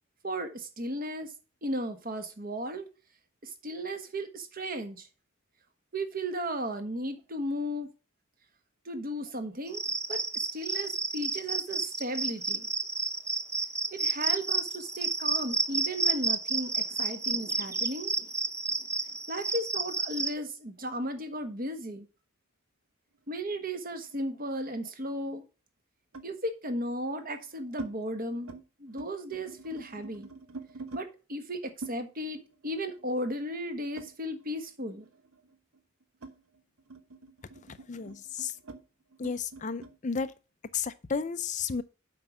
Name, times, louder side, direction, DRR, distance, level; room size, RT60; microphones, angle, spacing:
voice 1, 0.2-1.3 1.6-2.9 3.4-5.1 5.9-7.9 8.8-12.7 13.9-18.1 19.3-22.1 23.3-25.4 26.2-28.5 28.8-30.3 30.9-35.1, equal, 40° right, 1.4 m, -35 dB
Cricket, 9.7-20.3, right 4 dB, 15° right, 0.7 m, -30 dB
sound 1, 23.3-24.9 26.1-26.4 27.1-27.9 28.3-28.6 28.9-31.1 31.8-34.7 35.0-40.0, right 3 dB, 85° right, 1.1 m, -47 dB
voice 2, 37.9-38.5 39.2-40.3 40.7-41.8, left 5 dB, 35° left, 0.5 m, -32 dB
7.8 x 5.3 x 6.0 m
head